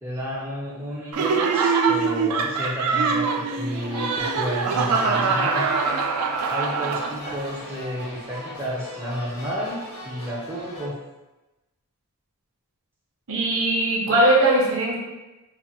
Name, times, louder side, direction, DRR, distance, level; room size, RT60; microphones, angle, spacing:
voice 1, 0.0-5.7 6.4-9.8 10.0-11.0, equal, 10° right, -6 dB, 0.4 m, -31 dB
Laughter, 1.1-7.5, right 5 dB, 80° right, 0.3 m, -23 dB
sound 1, 3.7-10.9, left 1 dB, 85° left, 1.0 m, -38 dB
voice 2, 13.3-14.9, right 1 dB, 65° right, -2 dB, 0.7 m, -20 dB
2.9 x 2.1 x 3.0 m, 1.1 s
head